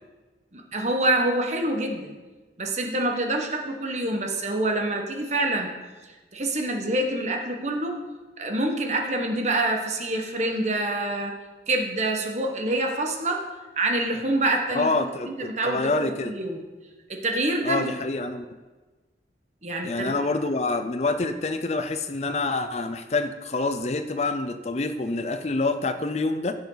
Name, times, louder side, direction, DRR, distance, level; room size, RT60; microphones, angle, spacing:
voice 1, 0.5-2.1 2.6-5.7 6.3-8.0 8.4-11.3 11.7-13.4 13.7-14.9 15.4-16.6 17.1-17.9 19.6-20.1, right 2 dB, 40° right, 2 dB, 1.3 m, -26 dB
voice 2, 14.7-16.3 17.6-18.4 19.8-26.5, left 3 dB, 35° left, 9 dB, 0.5 m, -27 dB
16.0 x 6.9 x 4.0 m, 1.3 s
head